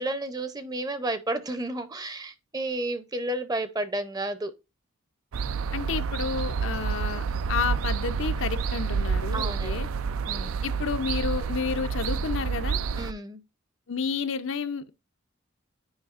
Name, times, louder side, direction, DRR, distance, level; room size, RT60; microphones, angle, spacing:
voice 1, 0.0-4.5 9.3-9.8 10.3-10.6 13.0-13.4, right 1 dB, 20° right, 0.6 m, -31 dB
sound 1, 5.3-13.1, right 5 dB, 80° right, 0.4 m, -29 dB
voice 2, 5.7-7.2 7.5-9.9 10.4-12.8 13.9-14.9, left 5 dB, 65° left, 0.6 m, -31 dB
9.5 x 4.8 x 2.4 m
head